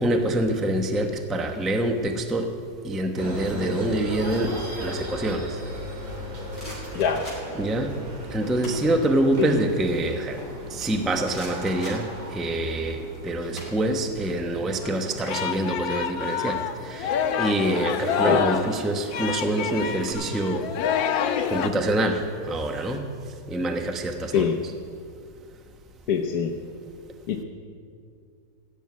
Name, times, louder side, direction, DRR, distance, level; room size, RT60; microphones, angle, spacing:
voice 1, 0.0-2.5 2.8-5.6 7.6-8.0 8.3-10.4 10.7-20.7 21.5-23.1 23.5-24.5, right 1 dB, ahead, 5 dB, 0.3 m, -26 dB
sound 1, 3.2-14.6, right 1 dB, 55° right, 2.4 m, -36 dB
sound 2, 6.2-7.7 8.4-8.9 9.3-10.9 11.2-12.6 12.9-14.3 14.6-14.8 15.1-16.6 17.6-18.0 18.7-20.1, equal, 15° right, 5.0 m, -44 dB
voice 2, 6.9-7.3 9.4-9.6 18.2-18.4 24.3-24.5 26.1-26.5 27.3-27.4, left 7 dB, 60° left, 1 dB, 1.2 m, -23 dB
Singing, 14.8-21.7, left 8 dB, 80° left, 1.5 m, -27 dB
16.0 x 7.3 x 9.4 m, 2.3 s
omnidirectional pair, 2.0 m